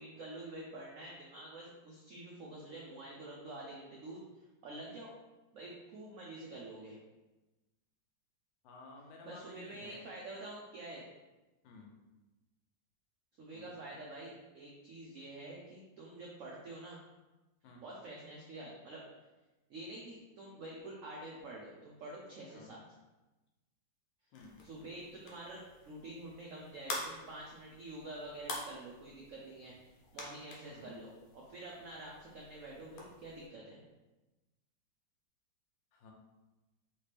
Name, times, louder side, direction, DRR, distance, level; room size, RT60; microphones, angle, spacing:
voice 1, 0.0-5.1 5.5-7.0 9.2-11.1 13.4-17.0 17.8-19.0 19.7-22.8 24.6-33.8, right 2 dB, 80° right, -3 dB, 0.7 m, -47 dB
voice 2, 8.6-10.1 11.6-12.0 13.5-13.9 17.6-17.9 22.5-22.7 24.3-24.6 30.7-31.0 35.9-36.1, left 3 dB, 85° left, 1 dB, 1.4 m, -54 dB
sound 1, 24.3-33.5, left 2 dB, 70° left, 1.3 m, -48 dB
3.2 x 2.9 x 3.3 m, 1.1 s
omnidirectional pair, 2.0 m